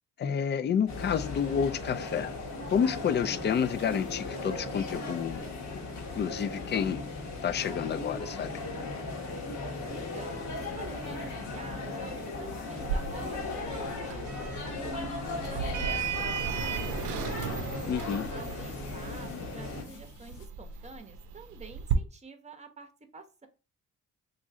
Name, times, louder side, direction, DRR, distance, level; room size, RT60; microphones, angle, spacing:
voice 1, 0.2-2.3 2.7-5.5 6.1-7.1 7.4-8.5 17.9-18.3, left 7 dB, 35° left, 0.4 m, -29 dB
sound 1, 0.9-19.8, left 3 dB, 65° left, 1.1 m, -37 dB
sound 2, 3.5-20.5, left 6 dB, 85° left, 0.7 m, -52 dB
voice 2, 9.9-15.2 15.5-17.5 18.3-23.5, right 4 dB, 20° right, 0.8 m, -48 dB
Sliding door, 12.8-21.9, right 8 dB, 85° right, 0.6 m, -36 dB
3.1 x 2.6 x 3.6 m
cardioid pair, 90°, 30 cm